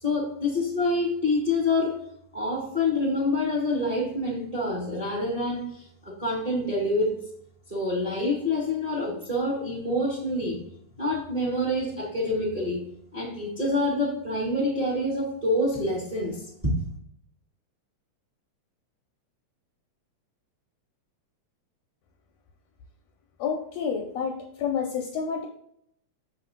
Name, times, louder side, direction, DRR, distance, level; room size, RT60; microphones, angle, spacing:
voice 1, 0.0-2.0 2.3-7.2 7.7-10.6 11.0-12.8 13.1-16.4, left 2 dB, 15° right, -4 dB, 1.4 m, -27 dB
voice 2, 23.4-25.5, left 6 dB, 75° left, 2 dB, 1.7 m, -29 dB
6.3 x 4.2 x 3.8 m, 0.70 s
omnidirectional pair, 3.4 m